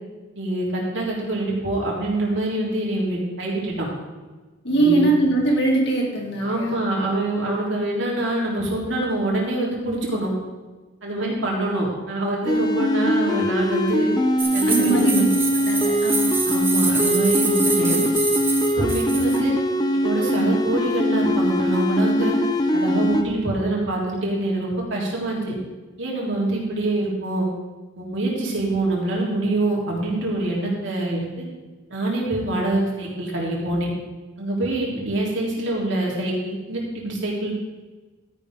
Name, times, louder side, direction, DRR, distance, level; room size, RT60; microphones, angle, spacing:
voice 1, 0.4-3.9 4.8-5.1 6.4-10.3 11.0-14.1 14.5-15.3 16.5-18.0 18.8-19.5 19.9-22.3 22.7-25.4 26.0-27.5 28.0-31.4 31.9-33.9 34.4-37.5, right 1 dB, 65° right, -3 dB, 3.6 m, -25 dB
voice 2, 4.6-6.8 14.7-15.3 15.6-16.4, right 2 dB, 55° left, -1 dB, 2.7 m, -21 dB
sound 1, 12.5-23.2, equal, 20° left, 0.9 m, -22 dB
sound 2, 14.4-19.4, right 3 dB, 10° right, 1.2 m, -26 dB
13.0 x 10.5 x 3.8 m, 1.3 s
head